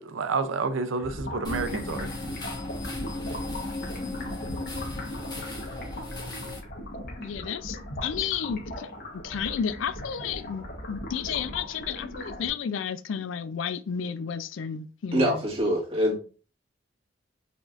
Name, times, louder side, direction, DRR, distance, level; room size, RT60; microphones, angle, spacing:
voice 1, 0.0-2.1, right 4 dB, 85° right, 0.5 m, -29 dB
sound 1, 1.0-12.5, left 1 dB, 55° left, 1.1 m, -38 dB
sound 2, 1.4-6.6, left 2 dB, 20° left, 1.1 m, -36 dB
voice 2, 7.2-8.9 9.1-15.4, left 7 dB, 80° left, 0.4 m, -32 dB
voice 3, 15.1-16.2, equal, 30° right, 1.7 m, -24 dB
4.8 x 3.5 x 2.4 m
head